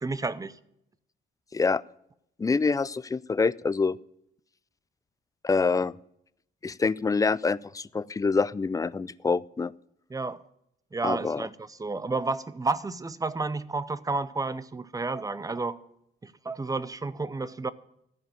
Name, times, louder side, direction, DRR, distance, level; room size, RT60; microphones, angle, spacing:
voice 1, 0.0-0.5 10.1-10.4 10.9-15.8 16.2-17.7, right 3 dB, 15° right, 0.6 m, -31 dB
voice 2, 2.4-4.0 5.4-5.9 6.6-9.7 11.0-11.5, left 4 dB, 15° left, 0.4 m, -26 dB
14.5 x 5.1 x 8.9 m
cardioid pair, 90°, 20 cm